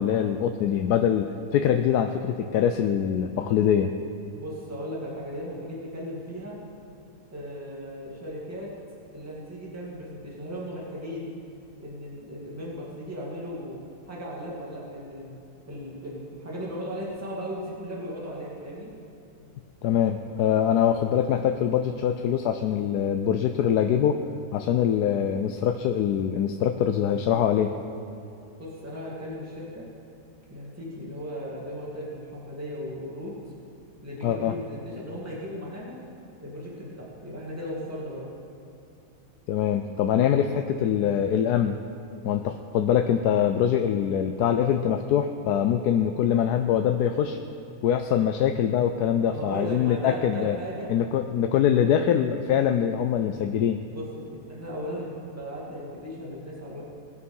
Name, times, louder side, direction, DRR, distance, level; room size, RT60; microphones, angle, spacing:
voice 1, 0.0-4.0 19.8-24.2 24.5-27.7 34.2-34.5 39.5-41.8 42.2-47.4 47.8-50.6 50.9-53.8, left 9 dB, 85° left, 6 dB, 1.1 m, -23 dB
voice 2, 4.3-6.6 7.3-8.7 9.1-11.3 11.8-13.8 14.1-15.4 15.7-18.9 20.6-20.7 28.6-29.8 30.5-33.3 34.0-36.0 36.4-38.3 49.3-50.9 53.9-56.8, equal, 10° right, -5 dB, 2.2 m, -36 dB
20.5 x 6.8 x 5.5 m, 2.8 s
omnidirectional pair, 1.7 m